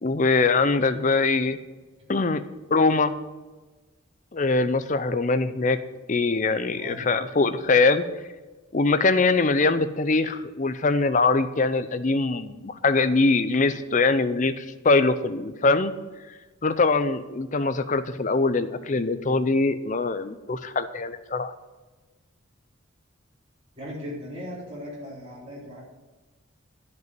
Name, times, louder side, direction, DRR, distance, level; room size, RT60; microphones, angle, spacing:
voice 1, 0.0-1.6 2.1-2.4 2.7-3.1 4.3-5.8 6.1-8.0 8.7-15.9 16.6-21.5, left 3 dB, 35° left, 12 dB, 0.5 m, -22 dB
voice 2, 6.7-7.1 23.8-25.8, equal, 30° right, -7 dB, 3.9 m, -38 dB
10.5 x 5.4 x 7.7 m, 1.2 s
head